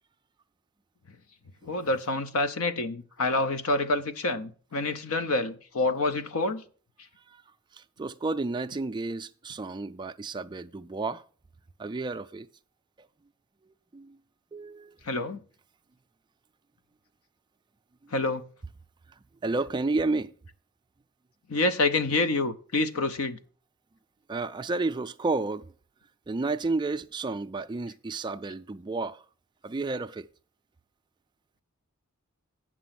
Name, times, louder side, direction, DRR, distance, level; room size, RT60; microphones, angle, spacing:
voice 1, 1.6-6.6 15.1-15.4 18.1-18.4 21.5-23.4, left 2 dB, 70° left, 0.7 m, -27 dB
voice 2, 7.7-11.2 11.8-12.5 13.9-14.2 14.5-15.0 19.4-20.3 24.3-25.7 26.3-29.2 29.6-30.3, right 3 dB, 20° right, 0.3 m, -31 dB
8.8 x 6.1 x 5.8 m
head